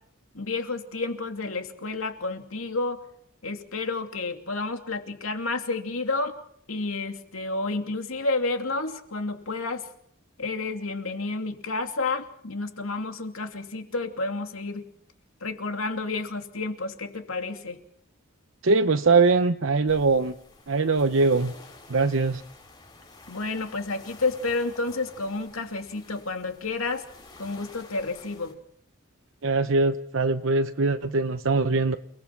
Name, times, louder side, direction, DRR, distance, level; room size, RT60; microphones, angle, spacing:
voice 1, 0.3-3.0 3.4-6.4 6.7-9.9 10.4-14.8 15.4-17.8 23.3-27.0 27.4-28.5, left 3 dB, 90° left, 5 dB, 2.8 m, -30 dB
voice 2, 18.6-20.3 20.7-21.5 21.9-22.4 29.4-32.0, right 3 dB, 65° right, 8 dB, 0.8 m, -22 dB
sound 1, 19.9-28.5, left 3 dB, 20° left, 5.5 m, -50 dB
30.0 x 19.5 x 6.0 m, 0.66 s
head